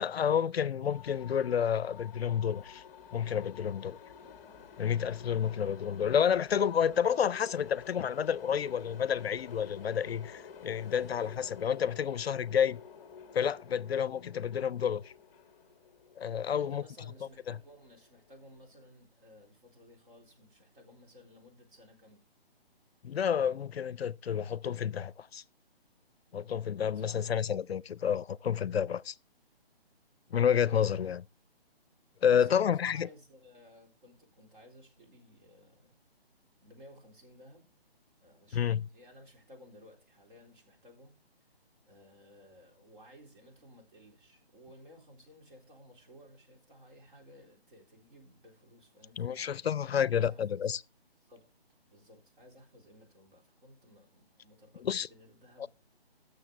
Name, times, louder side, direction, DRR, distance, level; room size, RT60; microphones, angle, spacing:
voice 1, 0.0-2.8 3.1-4.0 4.8-12.8 13.3-15.1 16.2-16.8 17.5-17.6 23.0-25.4 26.3-29.1 30.3-31.2 32.2-33.1 38.5-38.8 49.2-50.8 54.8-55.1 55.6-55.7, left 8 dB, 75° left, 0.5 m, -30 dB
sound 1, 0.9-18.6, left 6 dB, 15° left, 0.7 m, -51 dB
voice 2, 16.5-22.2 26.9-27.3 32.3-36.0 36.6-37.7 38.2-41.5 41.9-49.6 50.1-50.7 51.2-51.4 51.9-55.7, equal, 55° right, 3.9 m, -57 dB
13.5 x 6.6 x 3.4 m
figure-of-eight pair, 150°, 31 cm